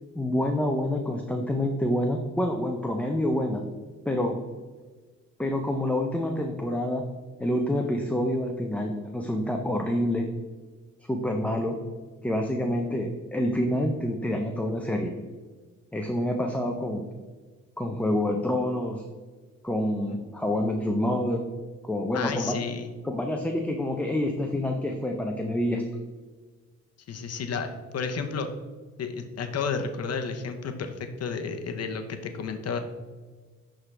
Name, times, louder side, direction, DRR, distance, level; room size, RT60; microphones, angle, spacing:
voice 1, 0.1-3.6 4.1-4.4 5.4-7.1 7.4-10.3 11.1-11.8 12.2-15.1 15.9-17.0 17.8-19.0 19.6-21.5 21.8-22.6 23.0-25.8, left 1 dB, 5° left, 2 dB, 0.6 m, -27 dB
voice 2, 22.1-22.9 27.1-28.5 29.0-32.8, left 5 dB, 55° left, 7 dB, 0.8 m, -32 dB
10.5 x 3.8 x 3.3 m, 1.4 s
cardioid pair, 90°, 30 cm